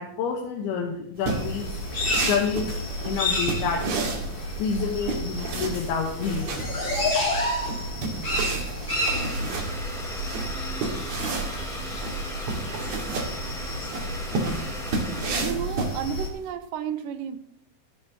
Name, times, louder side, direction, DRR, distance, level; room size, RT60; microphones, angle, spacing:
voice 1, 0.0-1.8 2.3-2.7 3.0-3.8 4.6-6.9, left 5 dB, 85° left, 0 dB, 3.3 m, -28 dB
sound 1, 1.2-16.5, right 3 dB, 50° right, 3.0 m, -32 dB
sound 2, 1.3-16.3, left 1 dB, 25° left, 3.4 m, -30 dB
Domestic sounds home sounds, 8.9-15.3, equal, ahead, 2.5 m, -38 dB
voice 2, 15.3-17.4, right 8 dB, 75° right, 10 dB, 2.3 m, -32 dB
14.5 x 13.5 x 3.0 m, 0.75 s
omnidirectional pair, 4.3 m